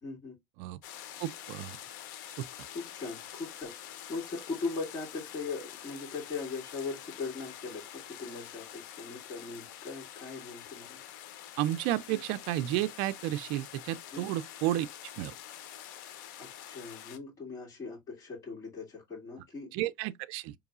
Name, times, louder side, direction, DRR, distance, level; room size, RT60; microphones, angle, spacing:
voice 1, 0.0-0.4 2.7-11.0 12.1-12.2 14.1-14.3 16.4-19.7, left 4 dB, 30° left, 2.2 m, -40 dB
sound 1, 0.8-17.2, left 11 dB, 85° left, 0.7 m, -46 dB
voice 2, 1.2-1.8 2.4-2.5 11.6-14.9 15.2-15.3 19.7-20.5, right 15 dB, 70° right, 0.4 m, -32 dB
4.6 x 3.0 x 2.4 m
supercardioid pair, 105°, 10 cm